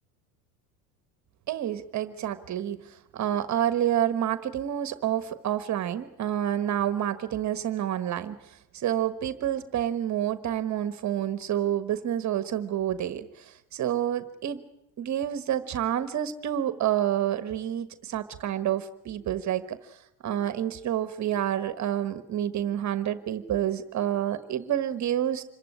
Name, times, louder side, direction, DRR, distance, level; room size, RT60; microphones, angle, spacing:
voice 1, 1.5-2.8 3.1-8.3 8.7-14.6 15.0-19.8 20.2-25.4, right 11 dB, 40° right, 13 dB, 1.3 m, -28 dB
26.5 x 15.0 x 9.8 m, 0.86 s
hypercardioid pair, 90°, 44 cm